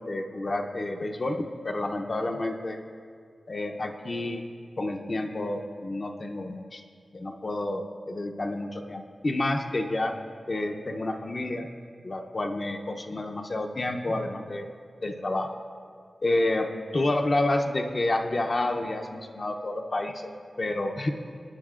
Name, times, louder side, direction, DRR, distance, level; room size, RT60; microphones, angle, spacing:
voice 1, 0.0-2.8 3.5-4.5 4.8-6.8 7.1-10.1 10.5-11.7 12.0-14.7 15.0-15.6 16.2-21.1, left 2 dB, 45° left, 3 dB, 0.6 m, -29 dB
19.0 x 10.0 x 2.4 m, 2.2 s
wide cardioid pair, 95°, 0 cm